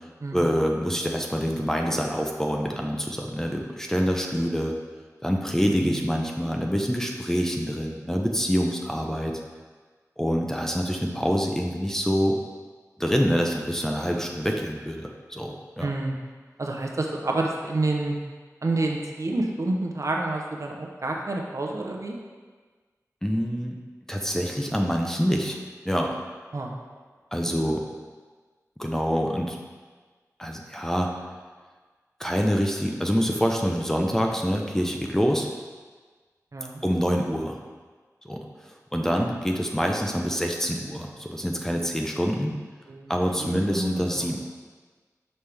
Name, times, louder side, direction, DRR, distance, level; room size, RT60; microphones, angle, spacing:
voice 1, 0.3-4.7 5.2-9.4 10.2-12.4 13.0-15.9 23.2-23.8 24.1-26.2 27.3-27.8 28.8-29.6 30.4-31.1 32.2-35.5 36.8-37.6 38.2-42.5 43.1-44.4, equal, 5° left, 1 dB, 0.6 m, -26 dB
voice 2, 15.8-16.2 16.6-18.2 18.6-22.1 26.5-26.7 36.5-36.8 42.9-43.1 43.4-44.4, right 2 dB, 55° right, 0 dB, 0.7 m, -28 dB
5.9 x 5.4 x 3.3 m, 1.4 s
wide cardioid pair, 70°, 6 cm